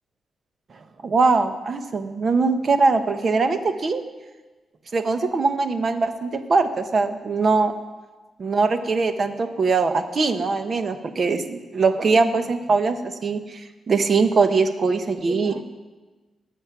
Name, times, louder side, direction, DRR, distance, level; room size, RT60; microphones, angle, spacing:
voice 1, 1.0-4.0 4.9-7.7 8.4-15.7, right 4 dB, 50° right, 8 dB, 1.1 m, -22 dB
19.5 x 6.6 x 6.0 m, 1.2 s
cardioid pair, 90°, 0 cm